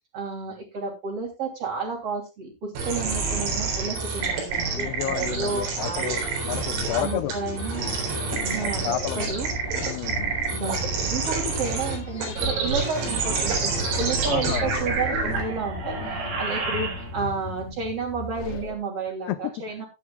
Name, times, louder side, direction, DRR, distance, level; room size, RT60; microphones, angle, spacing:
voice 1, 0.1-6.2 6.9-7.9 8.5-9.5 10.5-19.8, right 4 dB, 35° right, -5 dB, 3.3 m, -31 dB
sound 1, 2.8-17.3, right 4 dB, 70° right, 6.5 m, -28 dB
voice 2, 4.7-7.3 8.6-9.3 9.8-10.3 14.3-14.7 19.3-19.5, left 14 dB, 75° left, 11 dB, 2.4 m, -31 dB
sound 2, 6.5-18.8, left 5 dB, 60° left, 3.4 m, -37 dB
17.5 x 10.0 x 2.4 m, 0.25 s
omnidirectional pair, 5.9 m